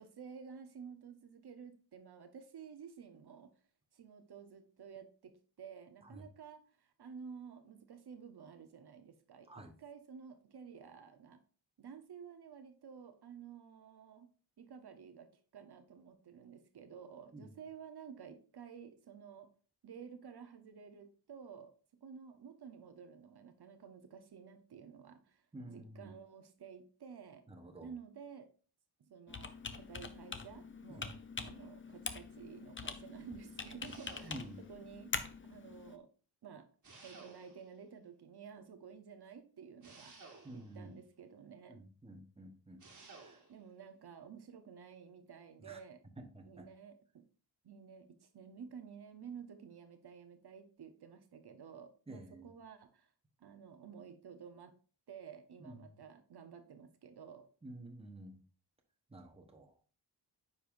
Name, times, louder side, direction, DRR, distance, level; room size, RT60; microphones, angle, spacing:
voice 1, 0.0-3.5 3.9-11.4 11.8-14.3 14.6-19.5 19.8-21.7 22.0-27.5 27.8-28.5 29.0-31.1 31.4-35.2 35.5-36.1 36.4-36.7 37.0-40.1 40.5-41.8 43.5-46.0 46.4-47.2 47.6-53.1 53.4-54.8 55.1-57.5, right 7 dB, 65° right, 7 dB, 0.9 m, -52 dB
voice 2, 25.5-26.1 27.5-27.9 30.9-31.1 34.2-34.6 40.4-40.9 41.7-42.8 43.2-43.4 45.6-45.8 46.2-46.7 52.1-52.5 55.6-56.0 57.6-58.4 59.1-59.7, right 1 dB, 15° right, 3 dB, 1.0 m, -50 dB
Computer keyboard, 29.3-36.0, left 4 dB, 30° left, 0.6 m, -44 dB
sound 1, 33.8-34.7 36.8-37.8 39.8-40.8 42.8-43.6, right 3 dB, 45° right, 1.6 m, -56 dB
9.5 x 5.5 x 2.6 m, 0.39 s
wide cardioid pair, 150°, 43 cm